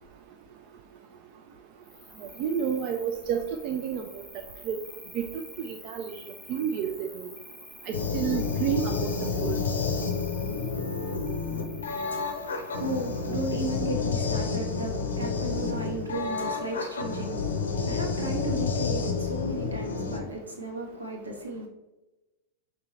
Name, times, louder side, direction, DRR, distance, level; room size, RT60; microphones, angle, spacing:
Cricket, 1.8-13.8, left 1 dB, ahead, 0.6 m, -49 dB
voice 1, 2.4-4.0 4.7-4.8 5.1-5.3 5.6-6.1 6.5-7.3 7.9-9.1 9.4-9.6, right 8 dB, 45° right, 5 dB, 0.3 m, -30 dB
sound 1, 7.9-20.2, left 4 dB, 70° left, 0.6 m, -30 dB
voice 2, 12.4-21.7, right 1 dB, 75° right, 1 dB, 1.0 m, -35 dB
5.4 x 2.8 x 3.0 m, 1.0 s
figure-of-eight pair, 90°, 0 cm